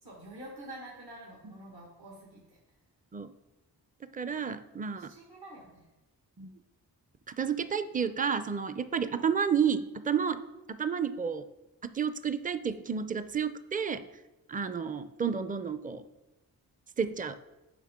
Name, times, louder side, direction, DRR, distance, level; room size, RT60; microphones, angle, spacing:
voice 1, 0.0-2.6 4.9-5.9, right 1 dB, 70° right, -3 dB, 1.9 m, -47 dB
voice 2, 4.1-5.1 6.4-6.5 7.4-10.4 10.7-11.4 11.9-14.0 14.5-16.0 17.0-17.4, right 7 dB, 20° right, 11 dB, 0.5 m, -31 dB
8.3 x 5.5 x 3.7 m, 1.0 s
cardioid pair, 50°, 40 cm